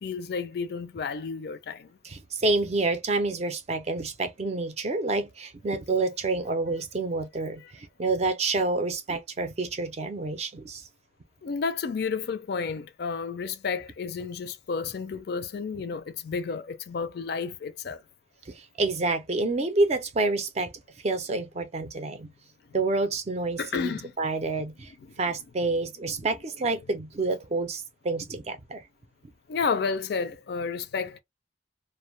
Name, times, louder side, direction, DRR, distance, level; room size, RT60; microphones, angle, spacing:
voice 1, 0.0-1.9 7.6-7.7 11.4-18.0 23.6-24.1 29.5-31.2, left 5 dB, 60° left, 0.4 m, -31 dB
voice 2, 2.0-10.8 18.5-20.7 21.0-22.3 22.7-28.8, right 3 dB, 35° right, 0.4 m, -28 dB
2.2 x 2.1 x 3.0 m
head